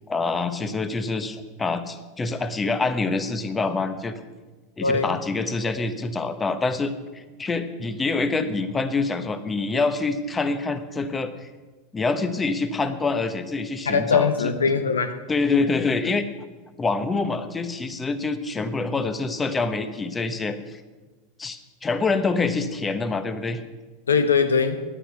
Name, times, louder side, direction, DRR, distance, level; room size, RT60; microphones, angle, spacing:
voice 1, 0.1-4.2 4.8-11.5 11.9-14.3 15.3-16.2 16.8-20.8 21.4-23.6, left 3 dB, 20° left, 10 dB, 1.1 m, -26 dB
voice 2, 4.8-5.2 13.9-15.2 24.1-24.8, left 5 dB, 90° left, 9 dB, 0.9 m, -21 dB
9.9 x 9.8 x 8.2 m, 1.3 s
hypercardioid pair, 95°, 0 cm